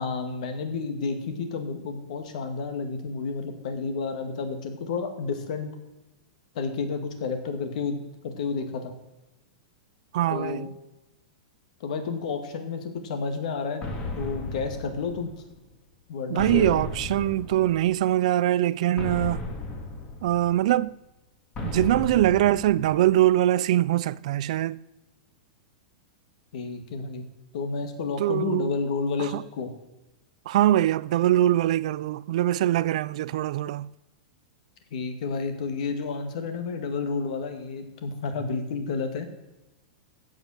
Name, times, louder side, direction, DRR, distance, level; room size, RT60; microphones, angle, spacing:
voice 1, 0.0-5.7 6.5-8.9 10.3-10.7 11.8-13.8 14.2-15.3 16.1-16.8 26.5-27.3 27.5-29.7 34.9-39.3, left 4 dB, 55° left, 2.1 m, -31 dB
voice 2, 10.1-10.6 16.3-19.5 20.2-21.0 21.6-24.8 28.2-28.7 29.2-29.4 30.5-33.9, right 13 dB, 55° right, 0.3 m, -23 dB
sound 1, 13.8-15.6 16.4-18.1 19.0-20.8 21.6-23.3, left 2 dB, 20° left, 1.7 m, -35 dB
15.0 x 5.4 x 7.2 m
supercardioid pair, 165°, 4 cm